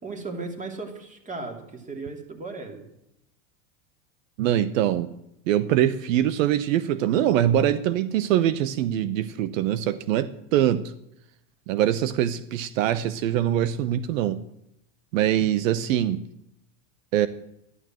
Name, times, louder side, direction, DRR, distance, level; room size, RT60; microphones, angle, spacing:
voice 1, 0.0-2.8, right 3 dB, 20° right, 4 dB, 3.1 m, -36 dB
voice 2, 4.4-5.1 5.5-10.9 11.7-14.4 15.1-16.2 17.1-17.3, right 11 dB, 75° right, 15 dB, 0.9 m, -23 dB
13.0 x 11.0 x 7.6 m, 0.80 s
supercardioid pair, 130°, 39 cm